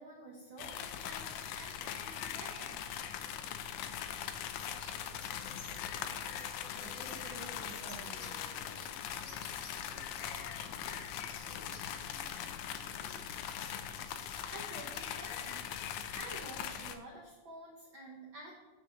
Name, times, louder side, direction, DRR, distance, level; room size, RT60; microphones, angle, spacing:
voice 1, 0.0-2.8 13.9-14.2 14.5-15.6 16.1-18.5, right 1 dB, 55° right, -3 dB, 1.4 m, -50 dB
sound 1, 0.6-17.0, left 9 dB, 80° left, 1.8 m, -41 dB
voice 2, 4.1-13.2, right 2 dB, 5° right, -5 dB, 1.6 m, -56 dB
sound 2, 4.6-4.9 5.2-5.9 6.4-6.5 7.0-7.2 7.6-8.3 8.8-8.9 9.1-10.4 10.9-11.9 12.1-12.2 13.0-13.2 13.6-13.7 14.0-14.3 14.9-15.5, left 5 dB, 60° left, 2.8 m, -52 dB
Wind, 5.0-9.4 9.6-9.7, equal, 20° right, 1.2 m, -60 dB
6.2 x 6.1 x 6.9 m, 1.2 s
omnidirectional pair, 3.8 m